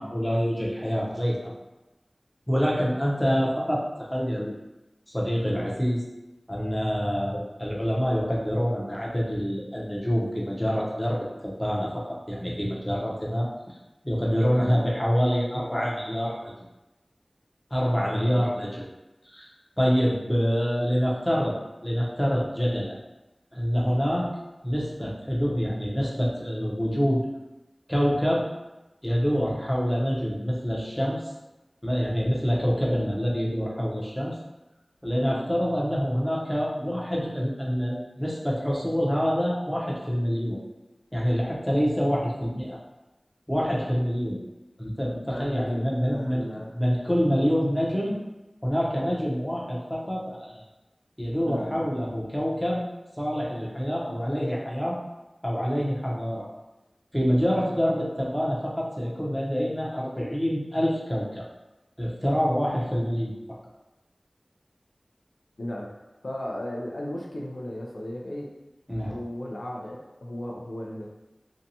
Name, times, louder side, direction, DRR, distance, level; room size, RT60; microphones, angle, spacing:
voice 1, 0.0-1.5 2.5-3.8 4.1-4.5 5.1-6.0 6.5-13.7 14.0-16.5 17.7-18.8 19.2-19.5 19.8-21.6 21.8-23.0 23.5-24.3 24.6-27.2 27.9-28.4 29.0-31.2 31.8-34.4 35.0-40.6 41.1-42.8 43.5-44.4 44.8-46.4 46.7-48.2 48.6-50.6 51.2-52.8 53.2-55.0 55.4-56.5 57.1-61.4 62.0-63.3 68.9-69.2, equal, 10° left, -4 dB, 0.7 m, -26 dB
voice 2, 14.5-14.8 18.2-18.4 35.2-35.5 45.3-46.7 51.5-51.9 65.6-66.0 66.2-68.5 69.1-71.1, left 1 dB, 85° left, -2 dB, 0.4 m, -35 dB
2.7 x 2.2 x 2.7 m, 1.0 s
wide cardioid pair, 50°, 0 cm